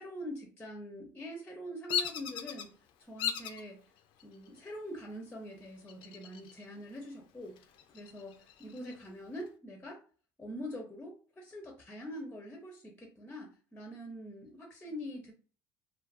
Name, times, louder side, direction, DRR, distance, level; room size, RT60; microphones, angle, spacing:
voice 1, 0.0-3.8 4.2-7.6 7.9-10.0 10.4-15.3, equal, 15° left, 2 dB, 0.6 m, -44 dB
Bird vocalization bird call bird song, 1.9-2.7 3.2-3.6 4.2-4.7 5.9-6.6 7.0-7.1 7.6-9.0, left 9 dB, 60° left, 0.4 m, -36 dB
2.4 x 2.3 x 2.4 m, 0.39 s
supercardioid pair, 105°, 9 cm